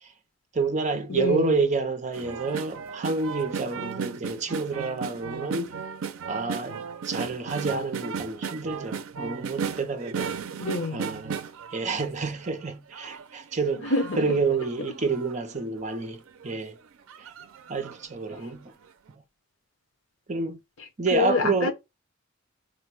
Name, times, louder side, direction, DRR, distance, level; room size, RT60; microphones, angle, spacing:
voice 1, 0.5-5.7 6.3-10.3 10.9-11.4 11.7-16.7 17.2-17.3 17.7-18.7 19.1-19.2 20.3-20.6 21.0-21.7, right 4 dB, 35° right, 0.6 m, -29 dB
voice 2, 1.1-1.6 10.6-11.1 13.8-14.4 21.1-21.7, left 3 dB, 70° left, 0.9 m, -27 dB
sound 1, 2.1-12.5 12.9-15.3 15.9-16.0 16.3-16.5 17.1-18.0 18.4-18.5, right 6 dB, 75° right, 0.4 m, -35 dB
4.3 x 2.2 x 4.6 m
head